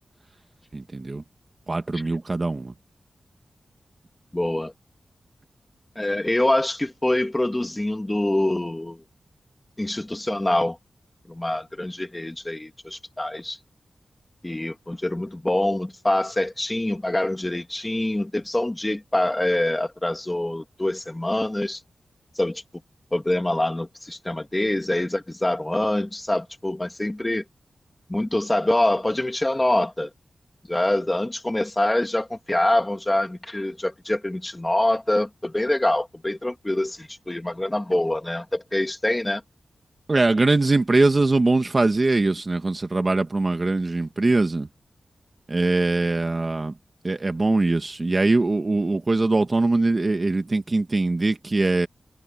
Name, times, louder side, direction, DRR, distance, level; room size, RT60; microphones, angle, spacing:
voice 1, 0.7-1.2 1.7-2.7 40.1-44.7 45.5-46.7 47.0-51.9, right 2 dB, 30° right, 1.3 m, -22 dB
voice 2, 4.3-4.7 6.0-9.0 9.8-10.8 11.3-13.6 14.4-21.8 22.4-22.6 23.1-27.4 28.1-30.1 30.7-39.4, left 1 dB, 15° left, 2.1 m, -25 dB
wide cardioid pair, 175°, 0 cm